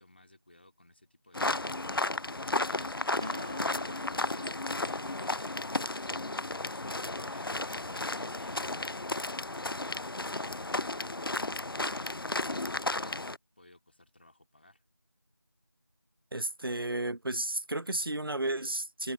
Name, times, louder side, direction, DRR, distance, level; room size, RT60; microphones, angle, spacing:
voice 1, 0.0-1.8 2.3-11.3 13.6-14.8, left 1 dB, 30° left, 3.0 m, -59 dB
sound 1, 1.3-13.4, left 2 dB, 75° left, 0.6 m, -33 dB
Acoustic guitar, 3.2-6.9, equal, 15° right, 0.8 m, -48 dB
voice 2, 16.3-19.1, right 2 dB, 75° right, 0.9 m, -33 dB
figure-of-eight pair, 175°, 12 cm